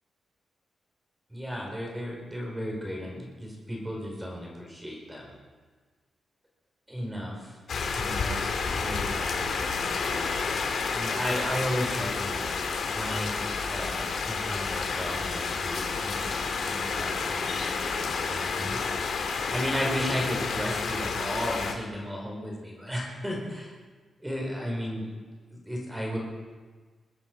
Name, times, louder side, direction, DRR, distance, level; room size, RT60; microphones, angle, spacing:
voice 1, 1.3-5.3 6.9-7.6 8.0-10.3 10.9-12.5 12.9-16.4 16.6-18.9 19.5-23.7 24.2-25.1 25.5-26.2, equal, 10° right, -1 dB, 4.6 m, -34 dB
sound 1, 7.7-21.7, left 5 dB, 65° left, 2.1 m, -30 dB
22.0 x 10.5 x 5.3 m, 1.4 s
wide cardioid pair, 130°, 0 cm